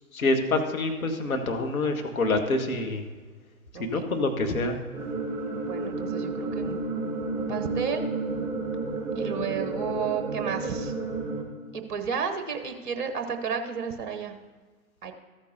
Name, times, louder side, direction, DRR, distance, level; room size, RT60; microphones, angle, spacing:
voice 1, 0.1-3.0 3.8-5.1, left 2 dB, 65° left, 5 dB, 1.5 m, -27 dB
voice 2, 3.7-4.1 5.6-6.8 7.4-8.0 9.1-10.9 11.7-14.4 15.0-15.1, right 6 dB, 30° right, 6 dB, 1.1 m, -32 dB
sound 1, 4.9-11.4, right 3 dB, 5° left, 2.7 m, -31 dB
14.0 x 8.9 x 2.7 m, 1.4 s
figure-of-eight pair, 130°, 45 cm